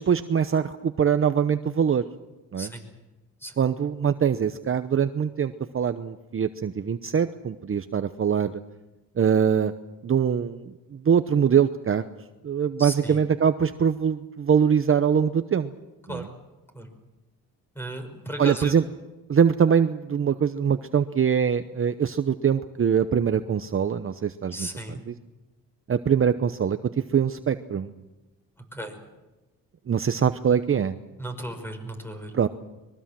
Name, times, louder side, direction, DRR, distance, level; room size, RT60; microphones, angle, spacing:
voice 1, 0.0-2.0 2.5-2.7 3.6-8.6 9.2-9.7 10.0-12.0 12.4-15.7 16.1-16.3 18.4-18.8 19.3-25.1 25.9-27.9 29.9-30.9 32.3-32.5, right 7 dB, 40° right, 10 dB, 0.9 m, -23 dB
voice 2, 2.6-2.9 3.4-3.7 12.8-13.2 16.1-16.3 16.7-16.9 17.8-18.8 24.5-25.0 28.7-29.0 31.2-32.4, right 1 dB, 5° left, 6 dB, 5.6 m, -35 dB
24.5 x 22.0 x 7.6 m, 1.1 s
cardioid pair, 95°, 35 cm